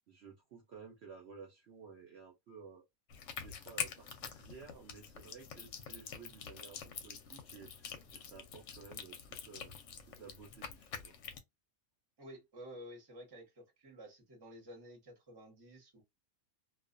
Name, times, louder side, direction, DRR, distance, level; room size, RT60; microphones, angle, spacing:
voice 1, 0.1-2.8 3.4-6.8 7.0-9.7 10.0-11.1, right 5 dB, 60° right, 0.8 m, -54 dB
sound 1, 3.1-11.4, left 7 dB, 70° left, 0.9 m, -46 dB
voice 2, 12.2-16.0, equal, 20° right, 0.7 m, -52 dB
2.4 x 2.2 x 2.5 m
omnidirectional pair, 1.5 m